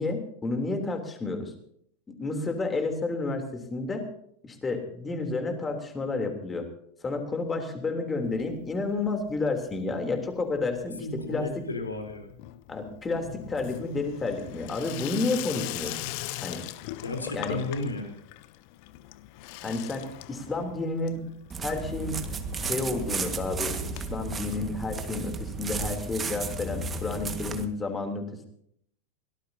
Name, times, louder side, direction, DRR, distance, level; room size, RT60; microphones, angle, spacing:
voice 1, 0.0-1.5 2.1-4.0 4.4-6.7 7.0-11.5 12.7-16.1 16.4-16.6 17.3-17.6 19.6-21.2 21.6-22.2 22.5-28.5, left 3 dB, 15° left, 5 dB, 3.3 m, -31 dB
Water tap faucet / Sink (filling or washing), 8.2-9.0 9.3-9.8 10.1-25.4 25.7-25.8 26.0-26.1 26.3-26.4 27.5-27.6, left 16 dB, 45° left, 0.9 m, -42 dB
voice 2, 11.0-12.3 17.0-18.2, left 2 dB, 75° left, 5 dB, 3.7 m, -33 dB
sound 1, 21.5-27.6, right 4 dB, 20° right, 1.7 m, -33 dB
23.0 x 18.0 x 2.8 m, 0.68 s
figure-of-eight pair, 90°, 0 cm